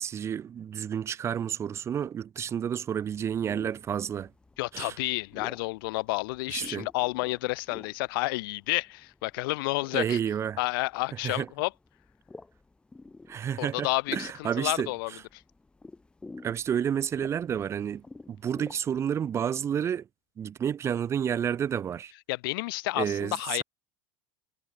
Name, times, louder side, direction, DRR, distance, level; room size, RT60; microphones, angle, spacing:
voice 1, 0.0-4.3 4.7-4.9 6.5-6.9 9.9-10.6 11.2-11.5 13.3-14.9 16.4-20.0 20.4-22.1 23.0-23.6, right 8 dB, 25° right, 1.4 m, -30 dB
sound 1, 3.0-19.2, left 3 dB, 10° left, 3.7 m, -50 dB
voice 2, 4.6-10.2 10.6-11.7 13.6-15.4 22.3-23.6, left 23 dB, 80° left, 0.9 m, -30 dB
cardioid pair, 160°, 12 cm